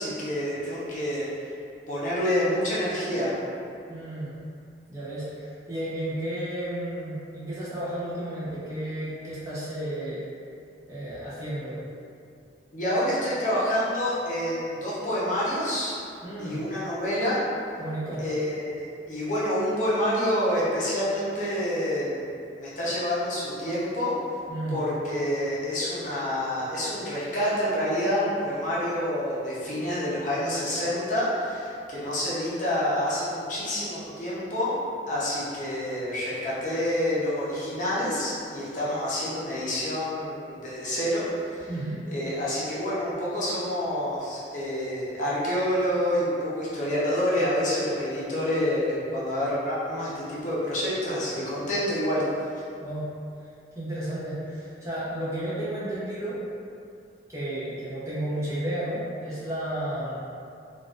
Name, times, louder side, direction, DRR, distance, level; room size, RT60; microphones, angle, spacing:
voice 1, 0.0-1.5 1.9-3.3 12.7-15.9 16.4-17.4 18.2-22.3 22.6-24.1 24.7-34.8 35.1-41.7 42.1-52.2, equal, 45° left, -8 dB, 0.7 m, -28 dB
voice 2, 3.9-4.4 4.9-10.2 10.9-11.8 16.2-16.7 17.8-18.2 24.5-24.8 41.7-42.0 52.8-53.2 53.7-56.4 57.3-60.2, right 1 dB, 15° right, -10 dB, 0.7 m, -32 dB
3.9 x 2.5 x 2.4 m, 2.5 s
head